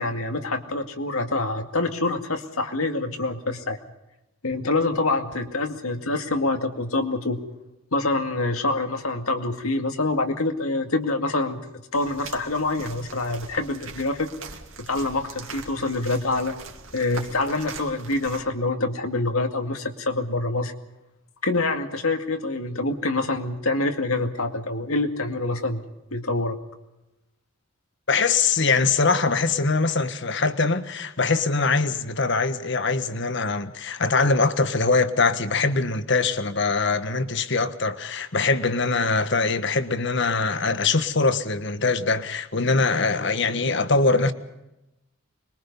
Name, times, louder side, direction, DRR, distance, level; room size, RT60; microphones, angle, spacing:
voice 1, 0.0-3.8 4.4-7.4 7.9-14.3 14.8-16.6 16.9-20.7 21.4-25.8 26.1-26.6, left 2 dB, 90° left, 2.2 m, -26 dB
sound 1, 11.9-18.4, right 4 dB, 70° right, 2.5 m, -41 dB
voice 2, 28.1-44.3, left 4 dB, 55° left, 1.4 m, -22 dB
25.5 x 22.0 x 5.5 m
head